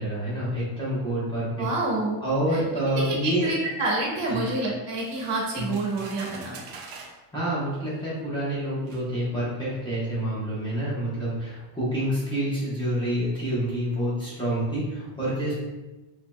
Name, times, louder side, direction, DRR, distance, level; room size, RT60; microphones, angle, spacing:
voice 1, 0.0-1.7 2.2-3.5 4.3-4.4 5.6-5.7 7.3-15.5, right 1 dB, 10° left, -9 dB, 0.9 m, -27 dB
voice 2, 1.6-2.2 2.5-2.6 3.0-6.6, right 2 dB, 65° right, -3 dB, 1.3 m, -28 dB
sound 1, 5.0-7.2 8.2-8.3 8.9-9.1, right 4 dB, 50° right, 0.6 m, -44 dB
4.9 x 2.9 x 2.2 m, 1.1 s
cardioid pair, 165°, 47 cm